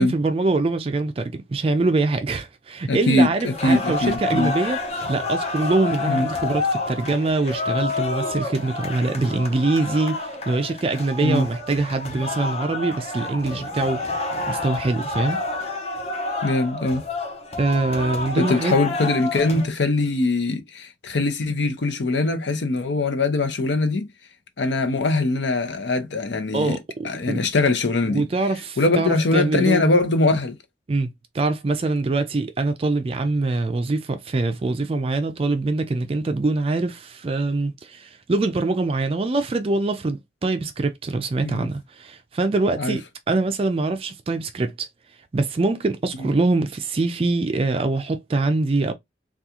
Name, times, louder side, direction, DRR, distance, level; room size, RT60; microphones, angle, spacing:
voice 1, 0.0-4.8 5.1-14.0 14.5-15.4 17.6-18.7 19.5-19.7 26.5-26.8 27.3-27.4 28.0-29.9 30.9-31.1 31.3-44.9 45.3-48.9, right 3 dB, 30° right, 0.3 m, -24 dB
voice 2, 2.9-4.5 6.1-6.3 11.2-11.5 16.4-17.0 18.4-24.1 24.6-26.8 27.0-28.2 28.8-30.6 41.4-41.7 42.8-43.0 46.1-46.3, left 2 dB, 80° left, 0.7 m, -22 dB
sound 1, 3.3-19.7, left 3 dB, 35° left, 0.7 m, -29 dB
3.5 x 2.3 x 2.8 m
head